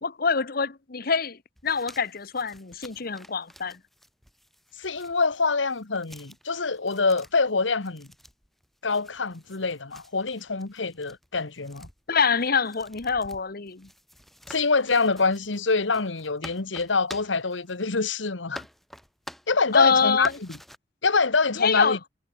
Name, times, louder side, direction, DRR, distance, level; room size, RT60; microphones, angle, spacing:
voice 1, 0.0-3.8 12.1-13.9 19.7-20.3 21.6-22.0, left 5 dB, 55° left, 1.1 m, -25 dB
sound 1, 1.6-18.2 18.5-19.8 20.2-20.8, equal, ahead, 4.4 m, -48 dB
voice 2, 4.8-8.1 8.8-11.9 14.5-18.6 19.5-20.6 21.0-22.0, left 4 dB, 90° left, 1.5 m, -25 dB
head